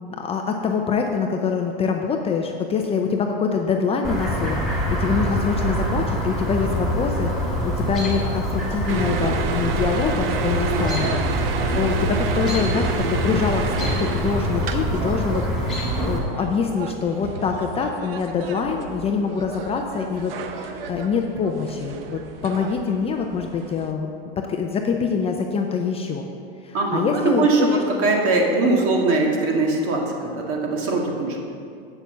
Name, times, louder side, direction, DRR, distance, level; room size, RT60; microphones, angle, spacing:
voice 1, 0.2-15.8 16.0-24.1 24.4-26.3 26.6-27.8, left 5 dB, 20° left, 3 dB, 0.5 m, -25 dB
Chirp tweet, 4.0-16.2, equal, ahead, 2.6 m, -25 dB
sound 1, 8.9-23.9, right 6 dB, 70° right, 0.9 m, -31 dB
voice 2, 10.7-11.0 26.7-31.4, right 3 dB, 45° right, 0 dB, 2.0 m, -21 dB
7.8 x 6.8 x 7.1 m, 2.4 s
hypercardioid pair, 125°, 30 cm